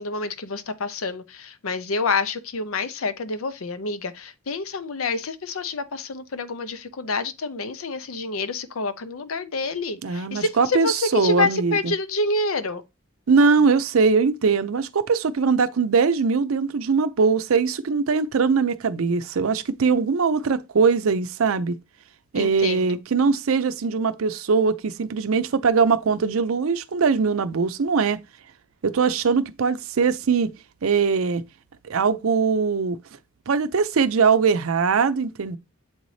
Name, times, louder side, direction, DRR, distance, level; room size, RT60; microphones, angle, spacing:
voice 1, 0.0-12.8 22.3-23.0, left 3 dB, 75° left, 0.7 m, -27 dB
voice 2, 10.0-11.9 13.3-21.7 22.3-28.2 28.8-30.5 30.8-31.4 31.8-33.0 33.5-35.6, right 5 dB, 75° right, 0.5 m, -21 dB
7.8 x 4.0 x 3.2 m
head